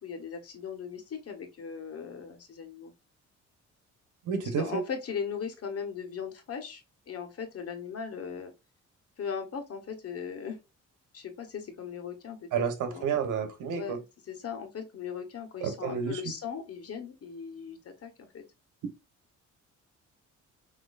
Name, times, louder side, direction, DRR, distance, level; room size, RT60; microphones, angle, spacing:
voice 1, 0.0-2.9 4.4-8.5 9.2-10.6 11.1-13.2 13.7-18.4, left 6 dB, 50° left, 1.3 m, -38 dB
voice 2, 4.3-4.8 12.5-14.0 15.6-16.2, right 7 dB, 80° right, 1.2 m, -30 dB
6.2 x 3.0 x 2.5 m
cardioid pair, 90°, 30 cm